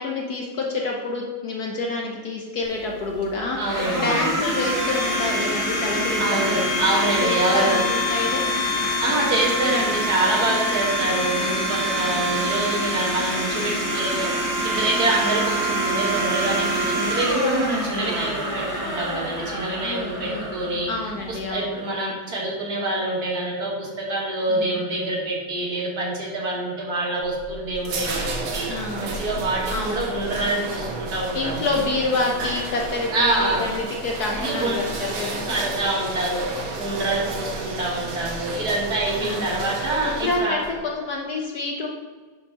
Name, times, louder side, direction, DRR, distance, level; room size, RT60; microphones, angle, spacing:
voice 1, 0.0-8.4 12.0-12.5 15.3-15.5 19.8-20.6 20.9-21.8 24.5-24.8 28.7-29.2 29.7-30.0 31.3-35.6 39.2-39.7 40.0-41.9, left 3 dB, 60° left, -1 dB, 1.2 m, -28 dB
Domestic sounds home sounds, 2.6-21.5, equal, 10° right, 1.5 m, -26 dB
voice 2, 3.6-4.2 6.2-7.8 9.0-14.3 14.6-20.9 21.3-28.7 29.0-31.7 33.1-33.7 34.4-34.8 35.5-40.6, right 2 dB, 50° right, -3 dB, 2.0 m, -26 dB
sound 1, 27.2-40.8, right 3 dB, 75° right, 1.8 m, -32 dB
10.5 x 6.9 x 2.9 m, 1.4 s
omnidirectional pair, 2.3 m